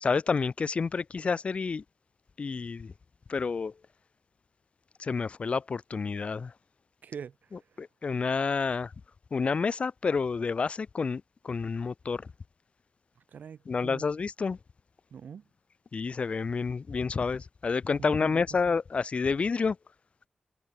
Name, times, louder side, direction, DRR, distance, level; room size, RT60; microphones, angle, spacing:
voice 1, 0.0-1.8 2.4-2.9 3.3-3.7 5.0-6.5 7.8-8.9 9.3-12.2 13.7-14.6 15.9-19.8, left 5 dB, 45° left, 0.4 m, -29 dB
voice 2, 7.0-7.9 13.3-14.1 15.1-15.5 18.0-18.6, right 7 dB, 90° right, 2.5 m, -44 dB
wide cardioid pair, 105°, 3 cm